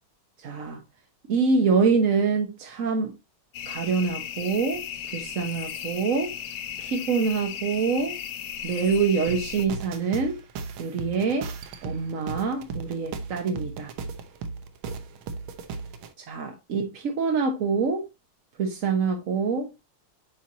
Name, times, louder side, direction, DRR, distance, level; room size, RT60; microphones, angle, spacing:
voice 1, 0.4-0.8 1.3-3.1 3.7-4.8 5.1-6.3 6.8-8.2 8.6-10.4 10.8-11.5 11.8-13.9 16.3-18.1 18.6-19.7, right 5 dB, 50° right, 1.0 m, -25 dB
sound 1, 3.5-9.7, left 9 dB, 65° left, 0.9 m, -36 dB
sound 2, 9.3-16.1, right 4 dB, 75° right, 1.7 m, -36 dB
8.4 x 4.5 x 2.7 m
omnidirectional pair, 2.3 m